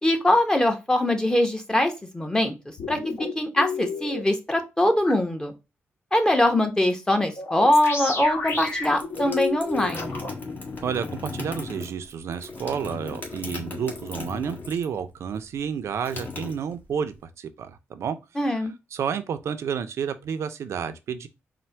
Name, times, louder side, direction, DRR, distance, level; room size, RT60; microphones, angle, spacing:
voice 1, 0.0-2.5 2.9-3.0 3.3-5.5 6.1-10.2 18.4-18.7, left 1 dB, 15° left, 1.0 m, -22 dB
sound 1, 2.8-4.2 5.0-5.1 7.4-10.3, left 4 dB, 55° left, 1.3 m, -31 dB
sound 2, 8.2-15.0 15.3-17.1, left 3 dB, 40° left, 1.6 m, -37 dB
voice 2, 10.8-18.2 18.5-21.3, right 7 dB, 75° right, 0.5 m, -30 dB
4.3 x 2.2 x 4.4 m
cardioid pair, 75°, 5 cm